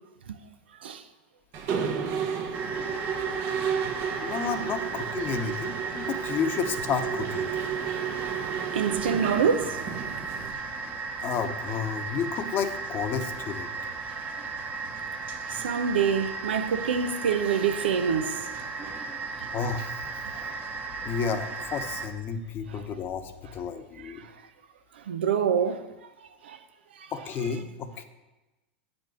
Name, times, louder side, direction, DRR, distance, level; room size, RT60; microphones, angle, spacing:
Mechanisms, 1.5-10.5, right 7 dB, 50° right, 1.0 m, -32 dB
sound 1, 2.5-22.1, right 4 dB, 30° right, 1.2 m, -36 dB
voice 1, 4.2-7.5 11.2-13.7 19.5-20.0 21.0-24.2 27.1-28.0, left 6 dB, 40° left, 0.9 m, -31 dB
voice 2, 8.5-9.8 15.5-18.4 20.4-20.6 24.0-24.1 25.1-25.8 26.5-26.6, right 7 dB, 85° right, 0.7 m, -26 dB
8.6 x 5.3 x 6.3 m
hypercardioid pair, 105°, 6 cm